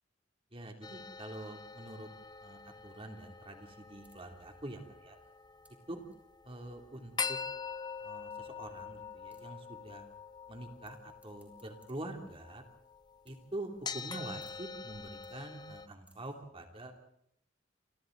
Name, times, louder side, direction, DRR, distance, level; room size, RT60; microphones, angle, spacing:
voice 1, 0.5-2.1 2.4-5.2 5.9-6.0 6.4-7.4 8.0-10.1 10.5-12.6 13.2-16.9, right 1 dB, 30° right, 3 dB, 2.9 m, -45 dB
sound 1, 0.8-15.9, left 5 dB, 25° left, 0.9 m, -45 dB
sound 2, 2.5-3.0 3.2-3.4 3.7-3.8 4.0-5.7 6.1-6.2 7.0-7.1 7.6-7.7 8.0-8.1 8.3-8.4 8.8-8.9 9.1-9.4 10.8-10.9 11.2-12.9 13.2-13.5 13.8-14.1 14.4-14.6 14.9-15.5 15.8-16.3, right 2 dB, 10° right, 6.3 m, -67 dB
28.0 x 26.5 x 3.9 m, 0.73 s
head